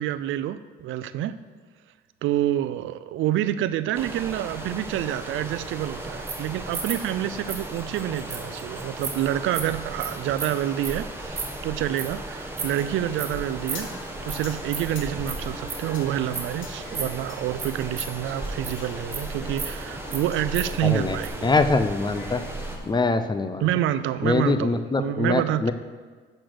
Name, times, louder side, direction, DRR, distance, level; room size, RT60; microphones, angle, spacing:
voice 1, 0.0-1.4 2.2-13.9 14.3-21.5 23.6-24.7 25.0-25.7, right 12 dB, 85° right, 14 dB, 0.5 m, -28 dB
sound 1, 3.9-22.8, right 1 dB, 10° right, 1.4 m, -36 dB
sound 2, 5.6-12.8 13.2-13.4 13.7-14.4 14.7-17.2 17.5-18.8 19.1-20.8 21.0-21.3, right 5 dB, 35° right, 1.7 m, -34 dB
Singing, 12.6-21.8 22.0-22.9, left 4 dB, 75° left, 1.3 m, -45 dB
voice 2, 20.8-21.2 21.4-22.4 22.8-23.7 24.2-25.7, left 3 dB, 20° left, 10 dB, 0.6 m, -23 dB
8.4 x 6.5 x 6.2 m, 1.5 s
cardioid pair, 90°, 20 cm